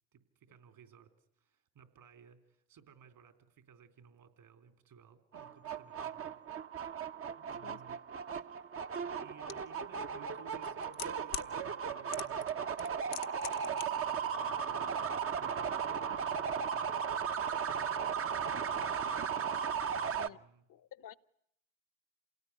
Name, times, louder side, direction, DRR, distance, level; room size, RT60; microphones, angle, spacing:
voice 1, 0.1-6.4 7.3-8.0 8.3-8.7 9.2-12.9 13.5-20.7, right 7 dB, 60° right, 3.9 m, -60 dB
sound 1, 5.3-20.3, right 7 dB, 35° right, 1.0 m, -36 dB
sound 2, 9.5-9.6 10.5-11.5 12.1-12.5 12.8-13.8 14.1-14.2, left 15 dB, 80° left, 1.1 m, -41 dB
voice 2, 20.7-21.1, left 11 dB, 55° left, 1.0 m, -51 dB
28.0 x 18.0 x 10.0 m
hypercardioid pair, 65°, 38 cm